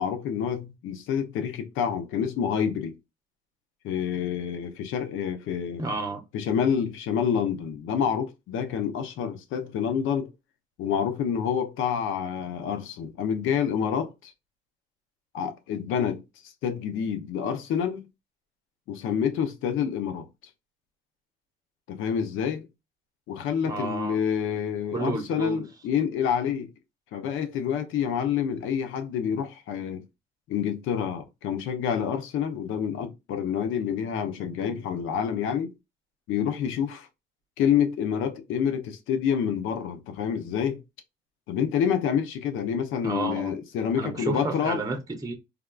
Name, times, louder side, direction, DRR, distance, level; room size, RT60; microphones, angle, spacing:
voice 1, 0.0-2.9 3.8-5.8 6.3-10.3 10.8-14.3 15.3-16.2 16.6-18.0 18.9-20.3 21.9-22.7 23.3-26.7 27.1-30.0 30.5-35.7 36.3-37.1 37.6-40.8 41.5-44.8, left 8 dB, 90° left, 0.6 m, -28 dB
voice 2, 5.8-6.2 23.6-24.2 24.9-25.6 43.0-43.5 44.0-45.3, right 2 dB, 20° right, 0.7 m, -31 dB
3.5 x 2.3 x 2.2 m
cardioid pair, 90°, 20 cm